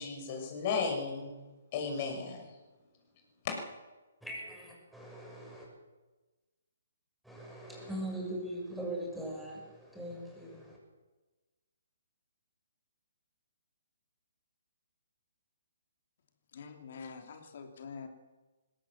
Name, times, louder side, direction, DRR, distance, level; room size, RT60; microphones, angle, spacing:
voice 1, 0.0-1.3 1.7-2.5 3.4-3.6, left 5 dB, 40° left, 3 dB, 6.3 m, -34 dB
voice 2, 4.2-5.7 7.2-10.8, right 1 dB, ahead, -3 dB, 6.7 m, -41 dB
voice 3, 16.5-18.1, left 5 dB, 55° left, 6 dB, 3.0 m, -46 dB
20.5 x 17.0 x 7.4 m, 1.2 s
figure-of-eight pair, 135°, 0 cm